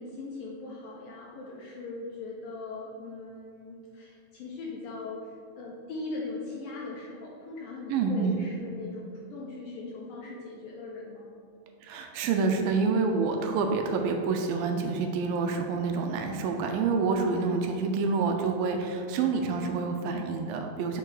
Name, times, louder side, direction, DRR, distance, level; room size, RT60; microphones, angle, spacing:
voice 1, 0.0-11.4, left 3 dB, 75° left, -4 dB, 2.2 m, -40 dB
voice 2, 7.9-8.4 11.8-21.0, right 4 dB, 80° right, 4 dB, 2.1 m, -27 dB
7.8 x 4.5 x 4.8 m, 2.4 s
omnidirectional pair, 4.7 m